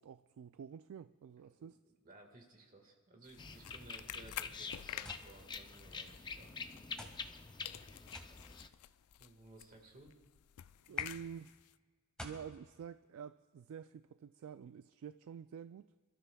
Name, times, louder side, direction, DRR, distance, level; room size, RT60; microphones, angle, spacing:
voice 1, 0.0-1.8 10.9-11.5 12.2-15.9, right 7 dB, 65° right, 0.3 m, -49 dB
voice 2, 1.4-6.5 9.2-10.1 10.9-11.1, right 2 dB, 40° right, 1.7 m, -58 dB
sound 1, 3.2-7.4 7.6-11.7, left 12 dB, 85° left, 0.4 m, -49 dB
sound 2, 3.4-8.7, left 4 dB, 20° left, 0.5 m, -47 dB
sound 3, 5.0-5.3 6.2-6.3 7.0-7.2 8.1-8.4 9.4-9.8 11.0-11.2 12.2-12.5, left 1 dB, 5° left, 1.6 m, -50 dB
27.5 x 13.5 x 2.3 m
head